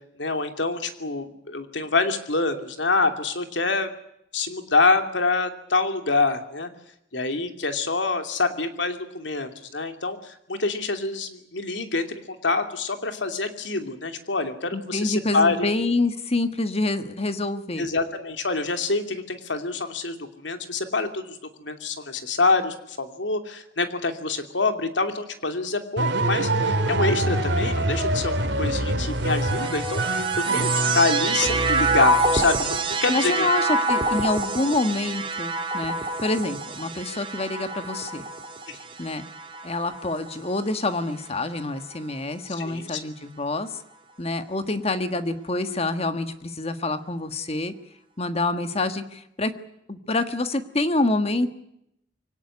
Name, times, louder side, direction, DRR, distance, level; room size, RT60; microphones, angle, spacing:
voice 1, 0.2-3.9 4.3-6.7 7.1-15.7 17.8-33.5 38.7-38.8 42.5-43.0, left 3 dB, 90° left, 7 dB, 2.7 m, -26 dB
voice 2, 14.7-17.9 33.1-38.3 39.0-39.2 39.6-43.8 44.2-47.7 48.2-49.5 49.9-51.5, left 2 dB, 35° left, 10 dB, 1.5 m, -27 dB
sound 1, 26.0-32.4, right 2 dB, 75° right, 2.7 m, -25 dB
sound 2, 29.1-40.6 41.4-42.1, right 3 dB, 30° right, 2.9 m, -27 dB
24.0 x 18.0 x 9.8 m, 0.77 s
head